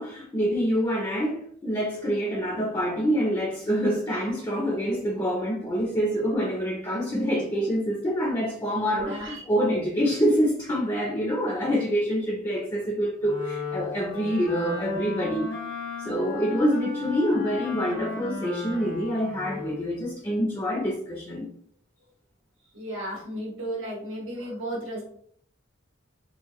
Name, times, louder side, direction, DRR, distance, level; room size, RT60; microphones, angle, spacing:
voice 1, 0.0-9.2 9.5-15.5 16.0-21.5, equal, 20° left, -1 dB, 0.6 m, -26 dB
voice 2, 8.9-9.4 22.7-25.0, right 1 dB, 90° right, -4 dB, 1.5 m, -34 dB
Wind instrument woodwind instrument, 13.2-19.9, left 4 dB, 85° left, 1.3 m, -35 dB
3.8 x 2.4 x 3.0 m, 0.63 s
head